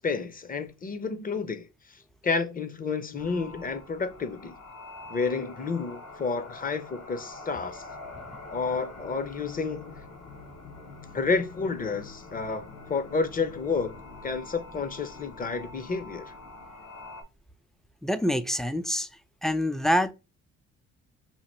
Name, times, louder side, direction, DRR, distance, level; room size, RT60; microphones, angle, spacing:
voice 1, 0.0-4.5 5.1-7.8 8.5-10.0 11.1-14.0 14.2-16.3, left 4 dB, 30° left, 0.7 m, -30 dB
sound 1, 3.2-17.2, left 2 dB, 60° left, 1.1 m, -45 dB
voice 2, 18.0-19.1 19.4-20.1, equal, ahead, 0.3 m, -26 dB
2.9 x 2.5 x 4.2 m
cardioid pair, 90°, 30 cm